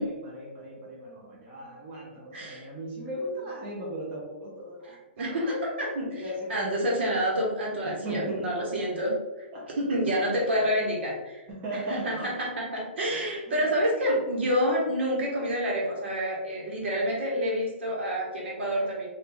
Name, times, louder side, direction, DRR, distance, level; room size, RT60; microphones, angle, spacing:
voice 1, 0.0-5.5 6.1-6.9 7.8-8.5 9.5-9.7 11.5-12.3 13.5-13.7, right 1 dB, 25° right, -5 dB, 0.9 m, -37 dB
voice 2, 2.3-2.7 4.8-9.1 9.8-11.4 11.7-19.1, equal, 70° right, -3 dB, 1.3 m, -28 dB
2.8 x 2.6 x 3.4 m, 1.1 s
hypercardioid pair, 155°, 6 cm